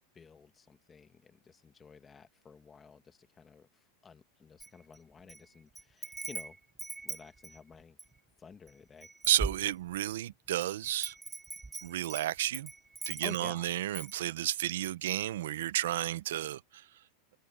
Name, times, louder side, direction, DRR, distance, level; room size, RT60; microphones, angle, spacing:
voice 1, 0.1-3.7 4.0-6.6 7.0-8.0 8.4-9.1 13.2-13.7, left 6 dB, 10° left, 1.3 m, -52 dB
Wind chime, 4.6-5.4 5.8-8.2 8.7-8.8 9.0-10.1 10.6-13.6 13.9-14.2, right 3 dB, 5° right, 1.2 m, -41 dB
voice 2, 9.3-11.1 11.8-12.7 13.1-16.9, right 13 dB, 80° right, 0.6 m, -32 dB
supercardioid pair, 180°, 0 cm